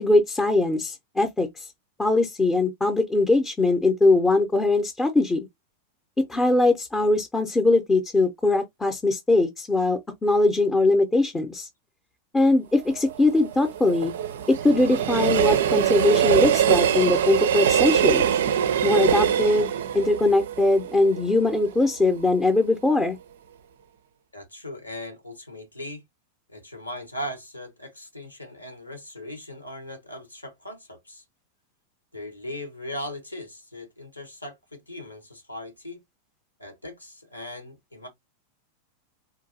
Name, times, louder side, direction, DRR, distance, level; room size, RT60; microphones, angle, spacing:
voice 1, 0.0-1.7 2.0-5.5 6.2-11.7 12.3-14.1 14.5-18.3 18.8-23.2, left 2 dB, 10° left, 0.6 m, -21 dB
Train, 12.8-21.9 22.2-22.3, right 9 dB, 60° right, 0.4 m, -23 dB
voice 2, 24.3-26.0 26.5-31.2 32.1-36.0 36.6-38.1, left 1 dB, 85° left, 1.1 m, -38 dB
3.8 x 2.6 x 2.6 m
figure-of-eight pair, 90°, 0 cm